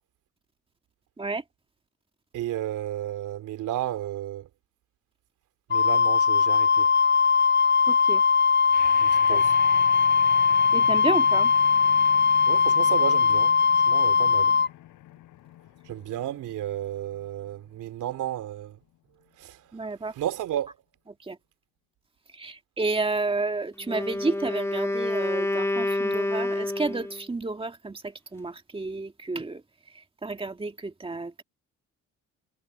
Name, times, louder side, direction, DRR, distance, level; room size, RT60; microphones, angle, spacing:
voice 1, 2.3-4.5 5.7-6.9 9.0-9.5 12.5-13.5 13.9-14.5 15.9-18.8 19.4-19.6 20.2-20.7, right 12 dB, 85° right, 2.9 m, -32 dB
Wind instrument woodwind instrument, 5.7-14.7, left 5 dB, 40° left, 0.6 m, -20 dB
voice 2, 7.9-8.2 9.3-9.4 10.7-11.5 19.7-20.1 21.2-21.4 22.3-29.6 30.2-31.4, right 3 dB, 20° right, 2.0 m, -31 dB
sound 1, 8.7-18.2, left 15 dB, 85° left, 4.9 m, -44 dB
Wind instrument woodwind instrument 2, 23.8-27.3, left 1 dB, 10° left, 1.7 m, -28 dB
cardioid pair, 90°, 30 cm